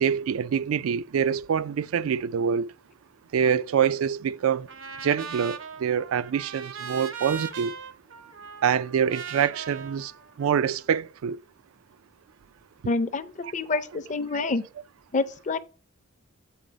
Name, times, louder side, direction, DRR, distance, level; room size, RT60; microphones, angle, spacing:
voice 1, 0.0-2.7 3.3-4.7 5.0-7.7 8.6-10.1 10.4-11.4 14.3-14.5, right 7 dB, 85° right, 0.4 m, -25 dB
Trumpet, 4.7-10.9, right 6 dB, 65° right, 0.8 m, -39 dB
voice 2, 12.8-14.6 15.1-15.6, left 3 dB, 35° left, 0.5 m, -27 dB
7.9 x 4.0 x 5.0 m
head